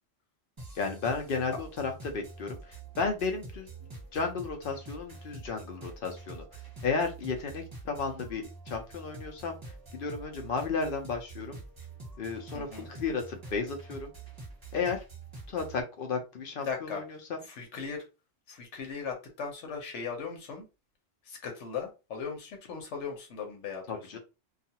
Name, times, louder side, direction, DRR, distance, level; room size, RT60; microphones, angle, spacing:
sound 1, 0.6-15.8, right 3 dB, 20° right, 0.9 m, -46 dB
voice 1, 0.8-3.7 4.1-9.6 9.9-11.6 12.2-14.1 14.7-15.0 15.5-17.4 23.9-24.2, left 4 dB, 60° left, 4 dB, 0.7 m, -33 dB
voice 2, 12.5-12.9 16.6-17.0 17.4-18.0 18.5-20.7 21.2-23.8, left 5 dB, 85° left, 3 dB, 1.1 m, -38 dB
2.4 x 2.4 x 2.8 m, 0.28 s
omnidirectional pair, 1.2 m